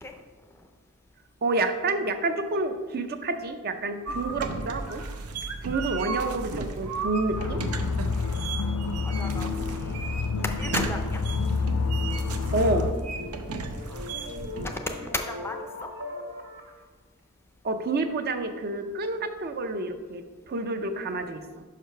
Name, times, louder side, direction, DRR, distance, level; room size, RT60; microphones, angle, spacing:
voice 1, 1.4-5.0 5.6-7.6 12.5-12.9 17.6-21.6, right 2 dB, 45° right, 7 dB, 0.5 m, -29 dB
sound 1, 4.1-14.7, right 3 dB, 90° right, 0.6 m, -34 dB
sound 2, 7.4-12.9, left 4 dB, 80° left, 0.4 m, -28 dB
voice 2, 8.6-10.0 10.4-11.2 13.9-14.0 14.6-15.6, left 2 dB, 10° left, 4 dB, 0.4 m, -35 dB
sound 3, 9.6-16.8, left 2 dB, 60° right, 1.3 m, -42 dB
5.6 x 5.0 x 5.5 m, 1.3 s
head